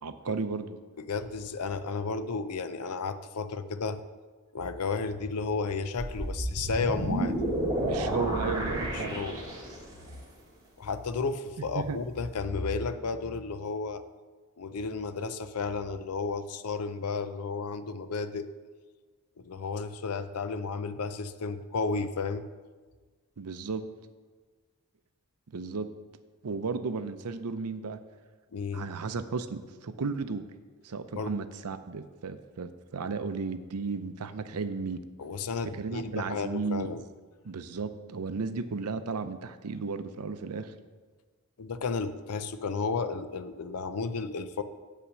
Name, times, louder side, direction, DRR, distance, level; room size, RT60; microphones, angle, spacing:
voice 1, 0.0-0.8 7.8-9.2 11.7-12.0 23.4-23.8 25.5-25.9 26.4-28.0 28.7-30.5 30.8-35.0 35.8-37.0 37.4-40.7, right 4 dB, 85° right, 10 dB, 0.6 m, -34 dB
voice 2, 1.0-4.0 4.5-7.4 8.9-9.4 10.8-14.0 14.6-18.5 19.4-22.4 28.5-28.8 31.1-31.3 35.2-37.0 41.6-44.6, left 4 dB, 90° left, 12 dB, 0.6 m, -33 dB
sound 1, 6.0-10.0, right 1 dB, 20° right, 2.0 m, -31 dB
8.4 x 5.7 x 6.3 m, 1.4 s
head